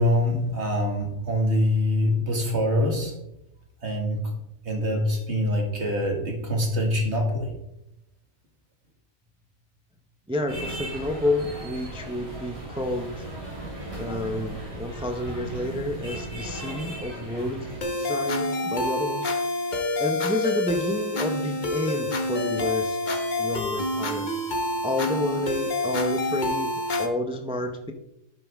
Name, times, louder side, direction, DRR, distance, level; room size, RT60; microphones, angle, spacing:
voice 1, 0.0-3.1 3.8-4.2 4.7-7.5, left 1 dB, 55° right, 1 dB, 2.3 m, -24 dB
voice 2, 10.3-13.3 13.9-19.3 20.0-24.3 24.8-27.9, left 1 dB, 5° right, 5 dB, 0.5 m, -30 dB
sound 1, 10.5-17.8, right 1 dB, 25° right, 2.8 m, -37 dB
sound 2, 17.8-27.1, left 2 dB, 35° left, 1.1 m, -27 dB
11.5 x 7.8 x 3.5 m, 0.86 s
omnidirectional pair, 1.4 m